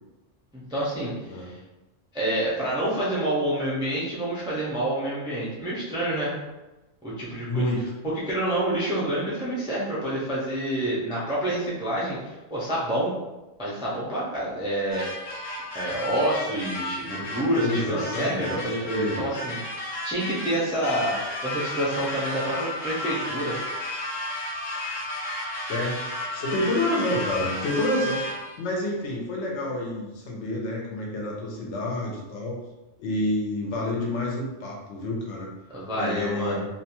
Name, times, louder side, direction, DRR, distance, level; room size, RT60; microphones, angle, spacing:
voice 1, 0.5-1.6 2.1-6.3 7.0-7.7 8.1-13.1 13.6-15.3 15.7-21.2 21.4-23.6 35.7-36.6, right 1 dB, 5° right, -7 dB, 0.4 m, -28 dB
voice 2, 7.5-7.8 17.6-19.3 25.7-26.0 26.3-28.3 28.6-32.6 33.0-35.5 35.9-36.7, left 1 dB, 75° left, -1 dB, 0.9 m, -28 dB
sound 1, 14.9-28.6, left 1 dB, 45° left, 0.8 m, -33 dB
2.5 x 2.2 x 2.9 m, 1.1 s
omnidirectional pair, 1.3 m